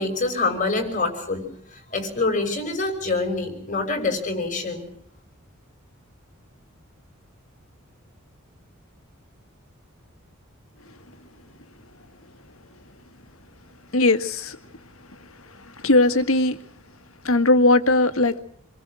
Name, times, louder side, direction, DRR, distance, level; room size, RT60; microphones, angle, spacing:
voice 1, 0.0-1.4 1.9-4.8, left 3 dB, 35° left, 5 dB, 6.0 m, -25 dB
voice 2, 13.9-14.6 15.4-16.6 17.2-18.4, left 2 dB, 75° left, 10 dB, 1.8 m, -19 dB
28.0 x 23.0 x 6.3 m, 0.65 s
head